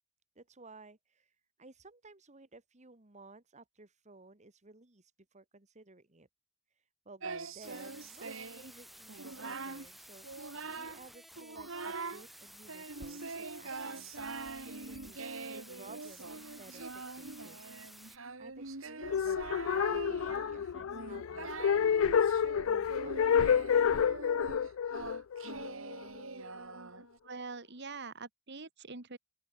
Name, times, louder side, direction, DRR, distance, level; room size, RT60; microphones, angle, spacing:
voice 1, 0.4-1.3 1.6-6.3 7.1-14.3 14.6-17.7 18.4-23.8, right 3 dB, 35° right, 2.1 m, -56 dB
Singing, 7.2-8.7 9.1-9.9 10.2-11.1 11.4-12.3 12.7-27.2, right 3 dB, 90° right, 3.0 m, -43 dB
sound 1, 7.6-18.2, equal, ahead, 2.9 m, -54 dB
sound 2, 19.0-26.2, left 7 dB, 85° left, 0.4 m, -29 dB
voice 2, 27.2-29.2, right 4 dB, 60° right, 2.2 m, -44 dB
open air
head